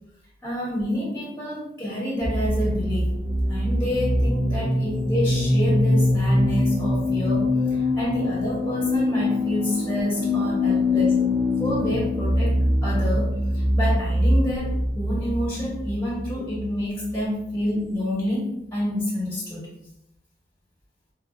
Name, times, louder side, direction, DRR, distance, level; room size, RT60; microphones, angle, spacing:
voice 1, 0.4-3.2 3.5-11.2 11.6-12.5 12.8-19.7, left 1 dB, 10° left, -6 dB, 1.1 m, -28 dB
sound 1, 2.2-17.8, left 1 dB, 20° right, 0.6 m, -23 dB
5.5 x 2.6 x 2.3 m, 0.81 s
head